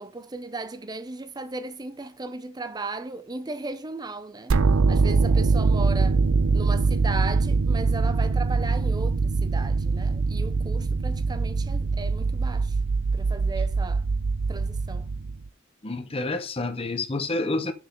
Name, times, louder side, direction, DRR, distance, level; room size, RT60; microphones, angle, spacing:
voice 1, 0.0-4.6 4.9-6.2 6.5-12.8 13.1-14.0 14.5-15.1, right 3 dB, 20° right, 0.6 m, -36 dB
sound 1, 4.5-15.5, right 4 dB, 80° right, 0.5 m, -23 dB
voice 2, 15.8-17.7, left 2 dB, 25° left, 0.9 m, -28 dB
6.7 x 6.5 x 3.8 m
head